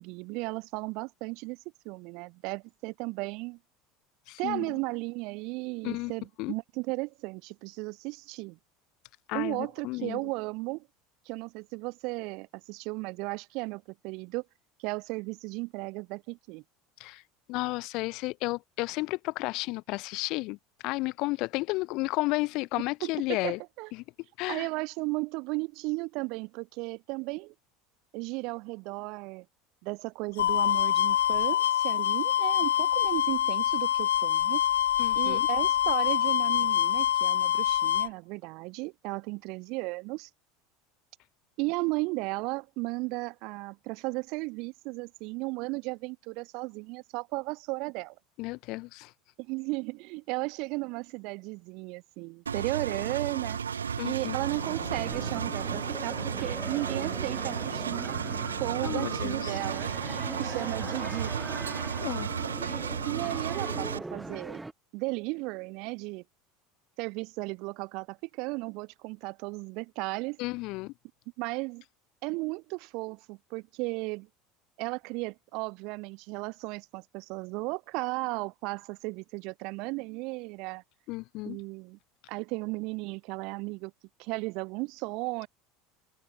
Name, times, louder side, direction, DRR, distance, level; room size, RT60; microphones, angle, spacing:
voice 1, 0.0-1.6 1.8-3.6 4.4-8.6 9.3-10.9 11.3-14.4 14.8-16.6 23.0-23.9 24.5-27.5 28.1-29.5 29.8-34.6 35.1-40.3 41.6-48.1 49.4-53.6 54.0-58.2 58.6-60.0 60.4-61.3 63.0-64.6 64.9-66.2 67.0-70.4 71.4-71.8 72.2-74.3 74.8-80.8 81.4-82.0 82.3-83.9 84.2-85.5, right 26 dB, 60° right, 5.8 m, -35 dB
voice 2, 4.3-4.7 5.8-6.1 6.4-6.5 9.3-10.2 17.0-17.2 17.5-20.6 20.8-23.6 23.9-24.0 24.4-24.7 35.0-35.5 48.4-49.1 54.0-54.4 58.8-59.6 62.0-62.3 70.4-70.9 81.1-81.6, left 23 dB, 60° left, 0.8 m, -32 dB
sound 1, 30.4-38.1, left 11 dB, 80° left, 1.3 m, -25 dB
Engine, 52.5-64.0, right 7 dB, 90° right, 0.4 m, -34 dB
sound 2, 54.2-64.7, right 2 dB, 10° right, 2.5 m, -40 dB
open air
hypercardioid pair, 75°, 0 cm